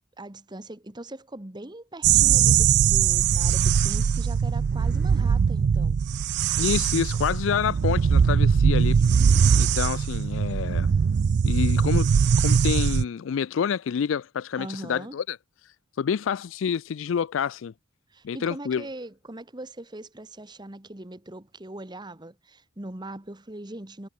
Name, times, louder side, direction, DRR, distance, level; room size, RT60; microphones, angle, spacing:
voice 1, 0.2-6.0 14.5-15.2 18.1-24.1, right 1 dB, 20° right, 1.4 m, -40 dB
sound 1, 2.0-13.0, right 7 dB, 55° right, 0.3 m, -21 dB
voice 2, 6.6-9.0 9.6-10.9 11.4-12.1 12.4-15.4 16.0-17.7 18.2-18.8, left 7 dB, 75° left, 0.4 m, -28 dB
head